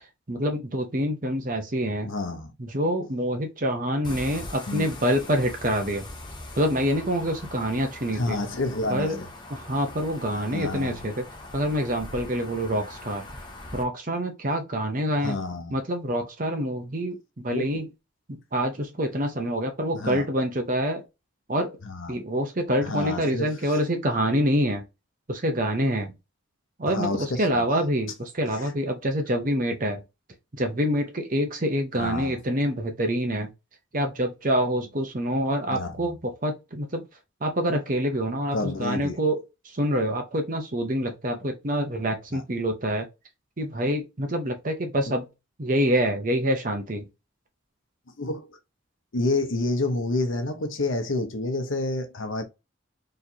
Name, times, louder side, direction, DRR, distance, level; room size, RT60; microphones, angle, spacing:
voice 1, 0.3-2.1 2.6-6.0 6.6-8.4 8.9-9.2 9.5-11.2 11.5-13.2 13.7-15.4 15.7-17.9 18.3-21.0 21.5-21.7 22.1-24.8 25.3-26.1 26.8-30.0 30.6-33.5 33.9-37.0 37.4-39.4 39.7-43.0 43.6-45.3 45.6-47.1, equal, 45° right, 0.9 m, -26 dB
voice 2, 2.0-2.5 4.7-4.9 8.1-9.3 10.3-11.0 15.2-15.8 17.5-17.8 19.9-20.3 21.8-22.2 22.8-23.7 26.9-27.7 28.5-28.7 32.0-32.4 35.7-36.1 38.5-39.2 42.3-42.4 48.2-48.5 49.1-52.4, left 2 dB, 80° left, 0.8 m, -29 dB
sound 1, 4.0-13.8, left 2 dB, 25° left, 0.8 m, -41 dB
4.2 x 3.3 x 2.8 m
head